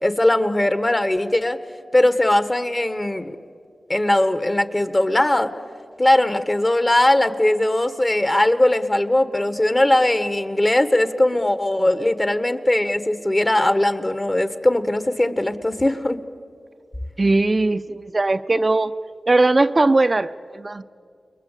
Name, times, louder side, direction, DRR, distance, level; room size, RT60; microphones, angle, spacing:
voice 1, 0.0-1.6 1.9-3.3 3.9-5.5 6.0-16.2, left 1 dB, 30° left, 11 dB, 1.5 m, -19 dB
voice 2, 17.2-18.9 19.3-20.8, right 2 dB, 40° right, 10 dB, 0.6 m, -19 dB
29.0 x 21.5 x 8.4 m, 2.3 s
cardioid pair, 55°, 0 cm